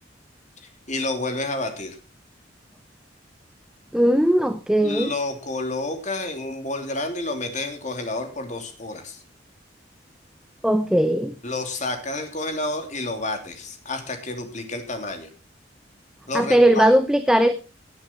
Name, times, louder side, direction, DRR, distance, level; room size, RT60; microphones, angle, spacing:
voice 1, 0.9-2.0 4.8-9.2 11.4-15.3 16.3-16.9, left 2 dB, 40° left, 5 dB, 3.1 m, -29 dB
voice 2, 3.9-5.1 10.6-11.4 16.3-17.5, right 1 dB, 5° right, 10 dB, 0.7 m, -18 dB
18.0 x 8.9 x 4.4 m, 0.32 s
head